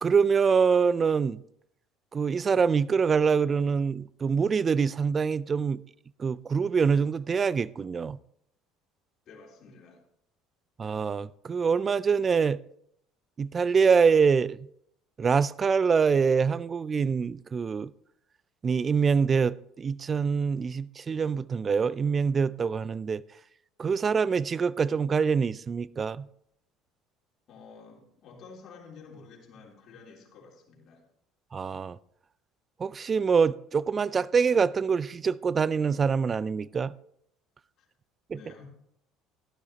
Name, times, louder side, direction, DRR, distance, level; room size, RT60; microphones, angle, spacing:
voice 1, 0.0-1.4 2.1-5.8 6.2-8.2 10.8-12.6 13.4-14.6 15.2-17.9 18.6-23.2 23.8-26.3 31.5-32.0 32.8-36.9, right 5 dB, 35° right, 0.3 m, -25 dB
voice 2, 9.3-10.0 27.5-31.0 37.8-37.9 38.3-38.7, left 4 dB, 50° left, 3.4 m, -50 dB
12.0 x 12.0 x 2.9 m
hypercardioid pair, 70°, 0 cm